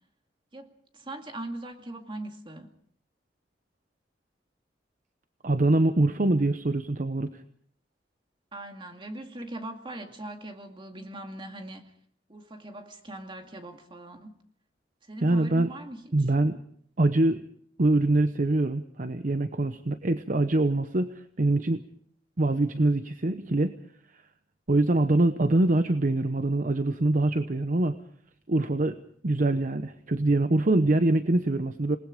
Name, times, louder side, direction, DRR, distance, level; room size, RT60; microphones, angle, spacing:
voice 1, 0.5-2.7 8.5-11.9 12.3-14.4 15.1-16.3, right 1 dB, 30° right, 2.3 m, -40 dB
voice 2, 5.4-7.4 15.2-15.7 16.1-16.6 17.0-17.5 17.8-21.8 22.4-23.7 24.7-28.0 28.5-29.0 29.2-32.0, right 2 dB, 45° right, 0.9 m, -24 dB
27.5 x 19.5 x 5.1 m
head